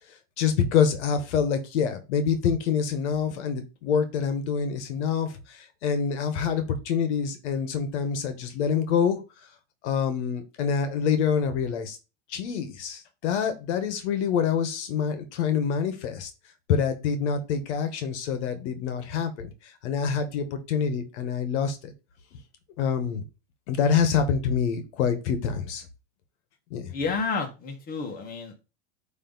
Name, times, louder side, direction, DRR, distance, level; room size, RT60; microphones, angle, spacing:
voice 1, 0.4-9.2 9.8-12.0 12.3-16.3 16.7-21.9 22.8-23.2 23.7-25.8 26.7-26.9, left 7 dB, 65° left, 9 dB, 1.4 m, -26 dB
voice 2, 26.9-28.5, left 4 dB, 25° left, 3 dB, 1.6 m, -30 dB
9.2 x 3.2 x 4.0 m, 0.29 s
supercardioid pair, 150°, 37 cm